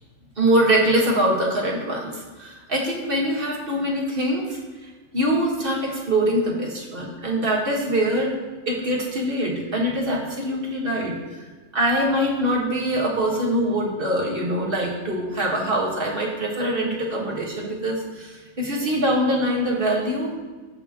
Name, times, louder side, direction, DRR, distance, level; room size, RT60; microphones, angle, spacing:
voice 1, 0.4-8.3 8.7-11.5 11.7-20.3, right 1 dB, 30° right, -2 dB, 1.8 m, -23 dB
15.5 x 5.2 x 3.1 m, 1.3 s
omnidirectional pair, 2.2 m